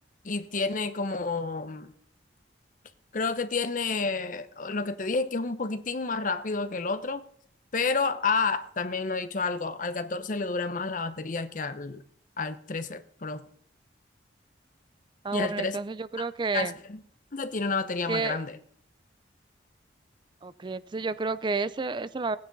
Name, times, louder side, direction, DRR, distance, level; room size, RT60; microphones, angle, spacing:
voice 1, 0.2-1.9 3.1-7.2 7.7-12.0 12.4-13.4 15.3-15.8 16.5-17.0 17.3-18.6, left 4 dB, 45° left, 11 dB, 0.8 m, -30 dB
voice 2, 15.2-16.7 18.1-18.4 20.4-22.4, right 3 dB, 25° right, 16 dB, 0.4 m, -30 dB
17.0 x 9.7 x 4.0 m, 0.67 s
head